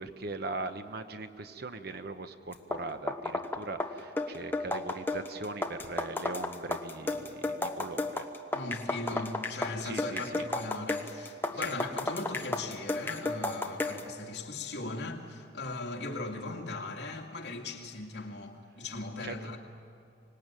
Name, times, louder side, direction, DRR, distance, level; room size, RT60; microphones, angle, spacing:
voice 1, 0.0-8.2 9.1-9.2 9.8-10.4 11.6-11.7 19.2-19.3, right 2 dB, 60° right, 9 dB, 1.1 m, -40 dB
sound 1, 2.5-14.1, left 2 dB, 10° left, 1.1 m, -33 dB
voice 2, 8.5-19.6, left 2 dB, 65° left, 0 dB, 2.5 m, -39 dB
25.0 x 19.5 x 9.1 m, 2.4 s
head